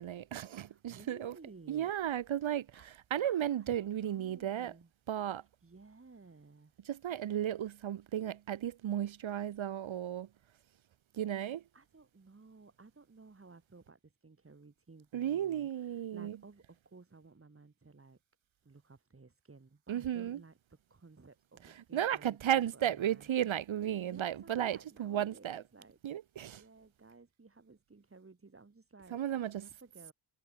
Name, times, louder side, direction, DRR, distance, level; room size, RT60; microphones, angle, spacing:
voice 1, 0.0-1.3 1.7-4.7 5.1-5.4 6.8-10.3 11.1-11.6 15.1-16.4 19.9-20.4 21.6-25.6 26.0-26.6 29.1-29.6, right 10 dB, 80° right, 1.5 m, -34 dB
voice 2, 0.6-1.9 2.7-2.9 3.2-4.9 5.4-6.7 11.7-18.2 18.6-23.3 24.0-26.0 26.6-29.2 29.6-30.1, right 3 dB, 30° right, 5.9 m, -57 dB
wide cardioid pair, 115°, 46 cm